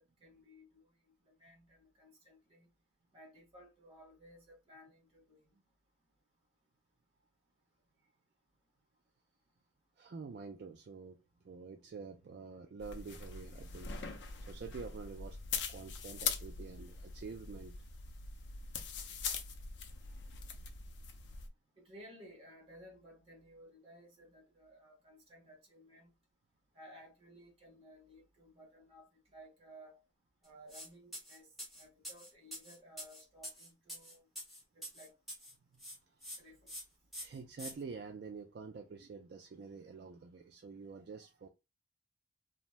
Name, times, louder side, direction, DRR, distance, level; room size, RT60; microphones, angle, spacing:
voice 1, 0.0-2.7 3.1-5.6 21.8-26.1 26.7-30.0 30.4-34.3 34.7-35.2 36.4-36.8, equal, 30° right, 1.1 m, -58 dB
voice 2, 10.0-11.2 11.4-15.4 15.7-17.9 35.7-35.8 36.1-36.4 37.2-41.5, right 5 dB, 60° right, 0.3 m, -48 dB
sound 1, 12.8-21.5, left 6 dB, 65° left, 0.5 m, -42 dB
sound 2, 30.7-30.9 31.1-35.5 35.8-36.4 36.7-36.8 37.1-37.7, equal, ahead, 1.0 m, -46 dB
2.6 x 2.1 x 3.0 m
head